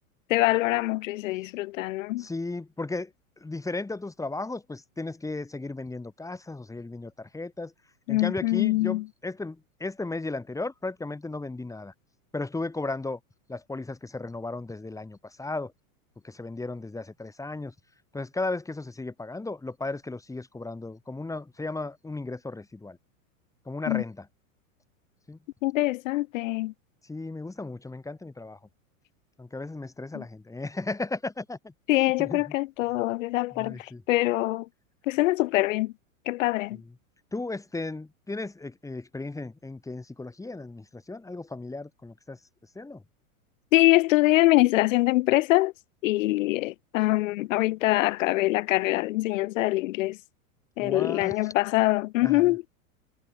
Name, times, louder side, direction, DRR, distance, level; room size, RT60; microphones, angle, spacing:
voice 1, 0.3-2.3 8.1-9.1 23.9-24.0 25.6-26.7 30.1-30.2 31.9-34.7 35.1-35.9 36.3-36.8 43.7-45.7 46.0-50.2 50.8-52.6, left 19 dB, 65° left, 0.6 m, -24 dB
voice 2, 2.2-7.7 8.1-11.9 12.3-13.2 13.5-15.7 16.2-17.7 18.1-23.0 23.7-24.2 25.3-25.4 27.1-28.6 29.4-32.5 33.6-34.0 36.7-36.8 37.3-42.4 42.8-43.0 50.8-51.3 52.2-52.5, left 2 dB, 5° left, 3.8 m, -35 dB
hypercardioid pair, 120°, 42 cm